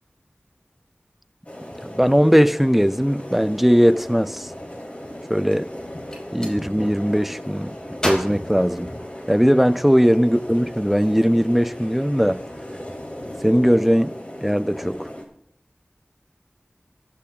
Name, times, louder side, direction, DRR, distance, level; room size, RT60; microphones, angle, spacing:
sound 1, 1.4-15.2, equal, 40° left, 2.9 m, -36 dB
voice 1, 1.9-4.5 5.3-5.7 6.3-7.8 8.0-8.9 9.3-12.4 13.4-14.1 14.4-15.1, equal, 5° right, 0.4 m, -19 dB
Gunshot gunfire, 6.1-6.6 8.0-9.4, equal, 20° left, 4.7 m, -30 dB
24.0 x 10.0 x 2.3 m
wide cardioid pair, 40°, 4 cm